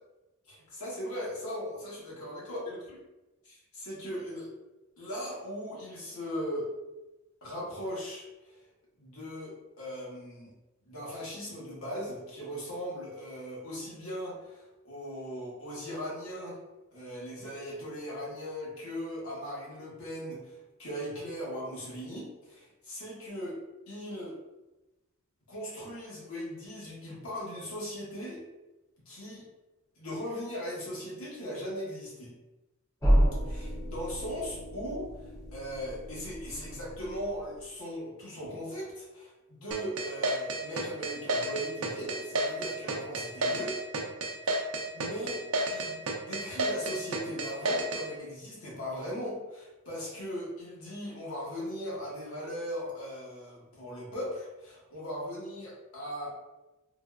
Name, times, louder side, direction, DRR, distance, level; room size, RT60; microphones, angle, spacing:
voice 1, 0.5-2.8 3.4-4.5 5.0-6.7 7.4-8.6 9.0-10.5 10.8-16.6 16.9-23.6 23.9-24.3 25.5-28.4 29.1-29.4 30.0-32.3 33.5-39.3 39.6-43.8 44.9-45.4 45.7-56.3, equal, 70° left, -5 dB, 1.2 m, -38 dB
sound 1, 33.0-37.7, equal, 15° left, 0.5 m, -30 dB
sound 2, 39.7-48.1, right 2 dB, 65° right, 0.5 m, -30 dB
3.8 x 2.3 x 2.3 m, 1.0 s
head